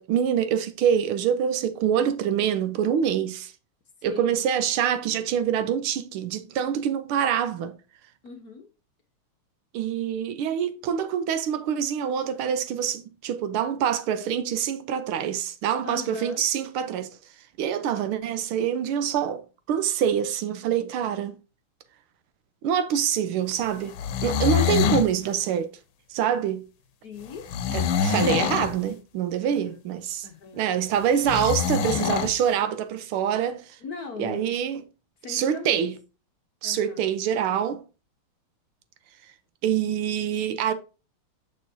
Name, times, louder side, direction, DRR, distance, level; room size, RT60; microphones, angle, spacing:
voice 1, 0.0-3.5 4.0-7.8 9.7-17.2 17.6-21.4 22.6-24.0 24.2-25.7 26.1-26.6 27.7-30.3 30.5-33.8 34.2-34.8 35.3-35.9 36.6-37.8 39.6-40.7, right 8 dB, 80° right, 1.6 m, -25 dB
voice 2, 4.0-4.4 8.2-8.7 15.8-16.4 27.0-27.5 29.4-29.8 30.2-30.6 33.8-34.5 35.2-35.8 36.6-37.0, left 5 dB, 55° left, 1.2 m, -39 dB
sound 1, 23.9-25.1 27.5-28.7 31.2-32.3, left 7 dB, 75° left, 1.5 m, -24 dB
6.6 x 6.3 x 2.7 m
omnidirectional pair, 2.4 m